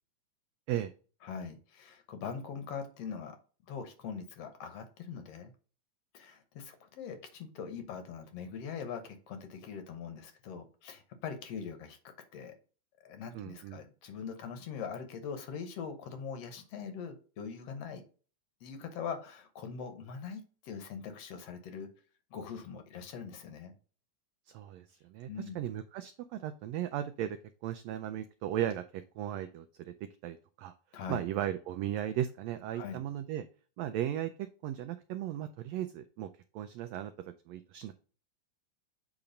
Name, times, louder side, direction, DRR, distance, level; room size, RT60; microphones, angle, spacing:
voice 1, 1.2-3.4 3.7-5.5 6.1-12.6 13.0-18.0 18.6-21.9 22.3-23.7 25.3-25.6 30.9-31.2 32.7-33.0, left 6 dB, 65° left, 7 dB, 1.7 m, -42 dB
voice 2, 13.3-13.8 24.5-27.4 27.6-30.7 31.1-33.4 33.8-37.9, right 11 dB, 90° right, 9 dB, 1.5 m, -36 dB
8.4 x 2.9 x 5.1 m, 0.38 s
omnidirectional pair, 3.5 m